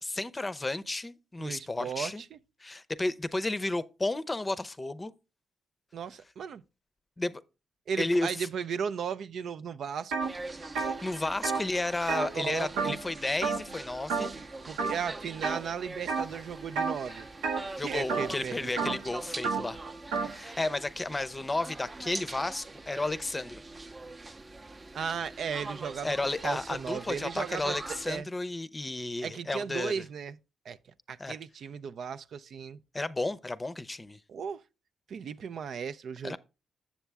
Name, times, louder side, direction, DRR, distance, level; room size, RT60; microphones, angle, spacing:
voice 1, 0.0-2.2 2.6-5.1 7.2-7.4 8.0-8.5 10.7-14.3 17.8-19.8 20.3-23.6 26.0-30.0 31.2-31.4 32.9-34.2 36.2-36.4, left 2 dB, 25° left, 0.6 m, -32 dB
voice 2, 1.4-2.4 5.9-6.6 7.9-10.1 12.3-12.9 14.7-17.3 17.8-18.9 24.9-28.3 29.2-30.4 30.7-30.8 31.1-32.8 34.3-34.6 35.1-36.4, right 7 dB, 70° right, 0.4 m, -36 dB
sound 1, 10.1-10.3 10.6-13.1 13.4-13.8 14.1-14.5 14.8-15.6 16.1-16.4 16.7-20.4, right 5 dB, 90° right, 0.8 m, -32 dB
sound 2, 10.2-28.2, right 2 dB, 35° right, 0.6 m, -44 dB
7.2 x 7.1 x 3.4 m
supercardioid pair, 55°, 0 cm